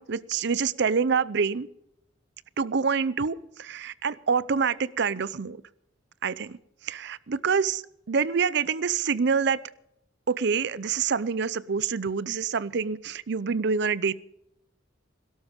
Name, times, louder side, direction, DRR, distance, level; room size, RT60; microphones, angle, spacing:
voice 1, 0.0-1.7 2.6-5.6 6.2-6.6 6.9-7.8 8.1-9.6 10.3-14.1, right 5 dB, 60° right, 19 dB, 0.6 m, -26 dB
17.5 x 12.5 x 5.2 m, 0.80 s
head